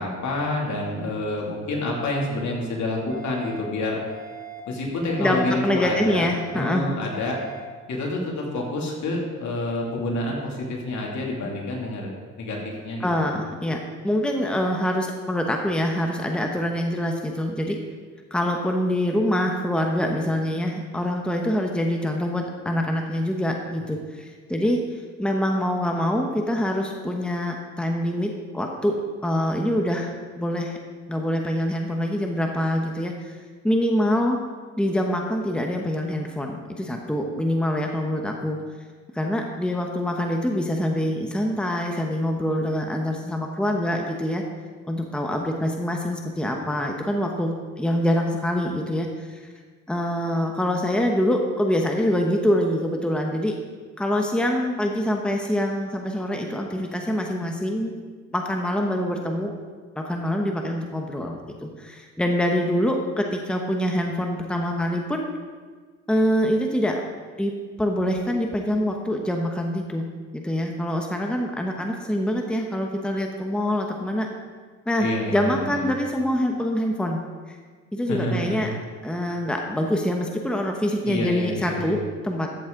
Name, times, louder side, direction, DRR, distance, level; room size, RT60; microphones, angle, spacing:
voice 1, 0.0-4.0 4.7-6.3 6.5-7.4 7.9-12.1 12.4-13.3 61.6-61.7 75.0-75.9 78.1-78.7 81.0-82.0, left 2 dB, 65° left, -2 dB, 2.7 m, -28 dB
sound 1, 3.1-3.6 4.1-4.6 5.1-5.6 6.1-6.6 7.1-7.6, right 6 dB, 40° right, 2.3 m, -40 dB
voice 2, 5.2-6.8 13.0-13.8 14.0-17.8 18.3-24.8 25.2-28.9 29.2-30.8 31.1-33.4 33.6-34.4 34.8-38.6 39.1-44.4 44.8-49.4 49.9-53.6 54.0-57.9 58.3-59.5 60.0-65.2 66.1-67.0 67.4-67.5 67.8-70.0 70.3-74.3 74.9-77.2 77.9-78.7 79.0-82.5, equal, 5° left, 2 dB, 1.1 m, -25 dB
14.0 x 7.2 x 3.9 m, 1.5 s
cardioid pair, 90°, 30 cm